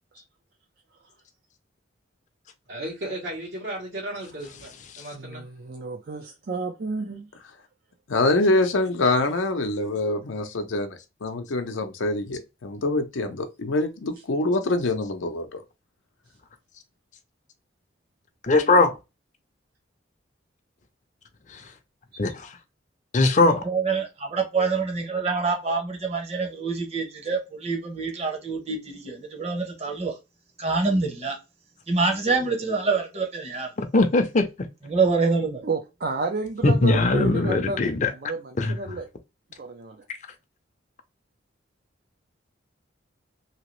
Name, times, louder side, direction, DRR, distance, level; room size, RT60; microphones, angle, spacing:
voice 1, 2.7-4.7 5.0-5.4, right 1 dB, 65° right, 1.3 m, -34 dB
voice 2, 5.1-7.3 22.1-22.2 35.6-39.1 39.6-40.0, right 3 dB, 50° right, 0.4 m, -31 dB
voice 3, 8.1-15.6, left 2 dB, 85° left, 0.6 m, -25 dB
voice 4, 18.5-18.9 21.5-21.6 22.2-22.5 23.1-23.7 33.8-34.5 36.6-38.1 38.6-38.8, left 2 dB, 40° left, 0.5 m, -20 dB
voice 5, 23.6-30.2 30.6-31.4 31.9-33.7 34.8-35.6, right 4 dB, 35° right, 1.0 m, -26 dB
2.9 x 2.8 x 3.0 m
head